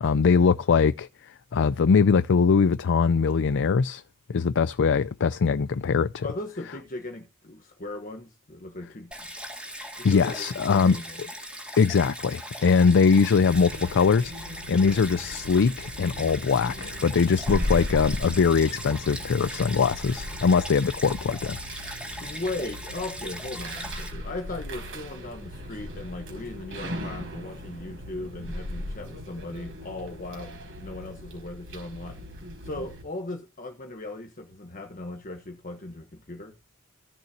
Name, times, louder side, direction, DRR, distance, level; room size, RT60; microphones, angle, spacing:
voice 1, 0.0-1.1 1.5-4.0 4.3-6.3 10.0-11.0 11.8-14.3 14.7-21.6, left 5 dB, 55° left, 0.4 m, -22 dB
voice 2, 6.2-9.3 10.0-11.2 14.8-15.0 22.2-32.3 32.6-36.5, left 2 dB, 40° left, 1.3 m, -38 dB
Stream, 9.1-24.1, equal, 5° right, 3.3 m, -39 dB
sound 1, 13.3-33.0, left 1 dB, 65° right, 4.8 m, -38 dB
15.5 x 6.6 x 2.8 m
head